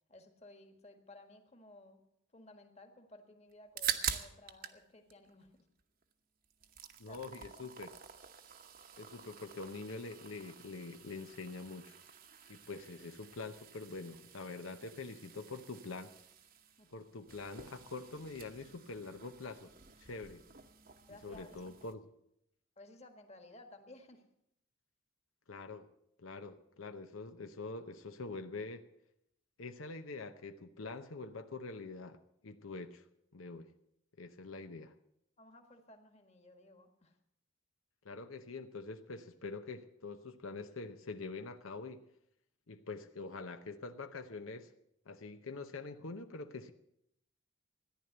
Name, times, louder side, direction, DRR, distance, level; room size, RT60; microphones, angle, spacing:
voice 1, 0.1-2.0 2.3-5.6 7.1-7.2 7.6-7.7 16.8-17.0 21.1-21.8 22.8-24.3 35.4-37.2, left 2 dB, 30° left, 6 dB, 1.6 m, -57 dB
sound 1, 3.5-4.8 5.1-6.1 6.4-21.9, right 8 dB, 45° right, 1.0 m, -46 dB
voice 2, 7.0-7.9 9.0-12.0 12.5-16.1 16.9-19.7 20.0-20.4 21.1-22.0 25.5-25.9 26.2-28.9 29.6-33.0 33.3-33.7 34.2-34.9 38.0-42.0 42.7-44.7 45.1-46.7, left 3 dB, 90° left, 8 dB, 0.8 m, -45 dB
14.0 x 10.5 x 7.9 m, 0.76 s
head